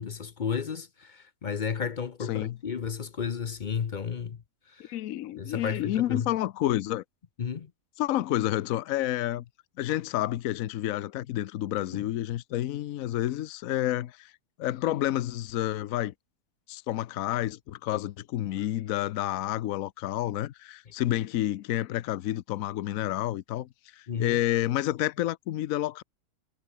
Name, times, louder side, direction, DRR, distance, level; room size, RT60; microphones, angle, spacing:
voice 1, 0.0-4.4 4.7-4.9 5.4-6.3 7.4-7.7 11.9-12.1 24.1-24.4, left 6 dB, 45° left, 0.6 m, -33 dB
voice 2, 4.8-7.0 8.0-9.4 9.8-14.3 14.6-16.1 16.7-26.0, left 14 dB, 65° left, 1.0 m, -29 dB
omnidirectional pair, 1.7 m